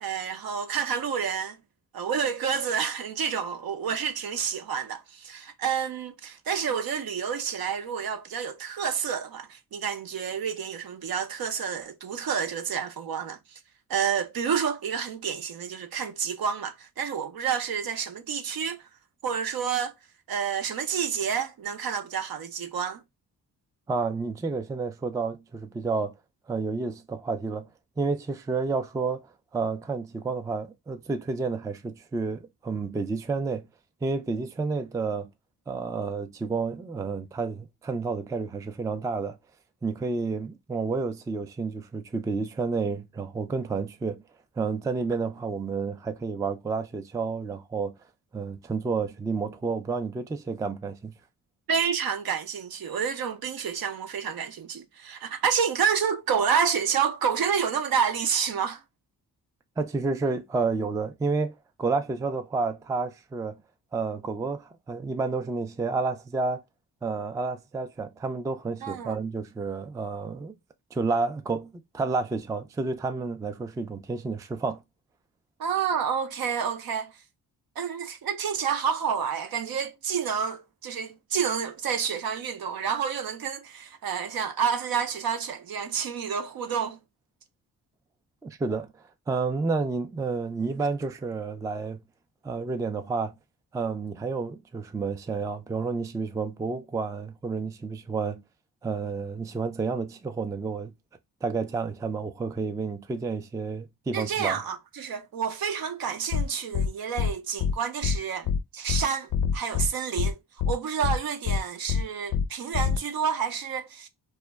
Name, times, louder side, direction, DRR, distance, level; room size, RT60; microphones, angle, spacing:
voice 1, 0.0-1.6 1.9-13.4 13.9-18.8 19.2-19.9 20.3-23.0 51.7-58.8 68.8-69.2 75.6-77.1 77.8-87.0 104.1-110.4 110.7-114.1, right 7 dB, 60° right, 0.6 m, -29 dB
voice 2, 23.9-26.1 26.5-27.7 28.0-33.7 34.0-35.3 35.7-39.4 39.8-44.2 44.6-47.9 48.3-51.2 59.8-63.6 63.9-66.6 67.0-70.6 70.9-74.8 88.4-88.9 89.3-92.0 92.4-93.3 93.7-98.4 98.8-100.9 101.4-104.6, right 4 dB, 10° right, 0.3 m, -30 dB
sound 1, 106.3-106.4 106.7-106.9 107.2-107.3 107.6-107.7 108.0-108.2 108.5-108.6 108.9-109.0 109.3-109.9 110.2-110.3 110.6-110.7 111.0-111.2 111.5-111.6 111.9-112.0 112.3-112.4 112.7-113.0, left 7 dB, 50° left, 0.5 m, -25 dB
2.2 x 2.1 x 3.3 m
cardioid pair, 60°, 41 cm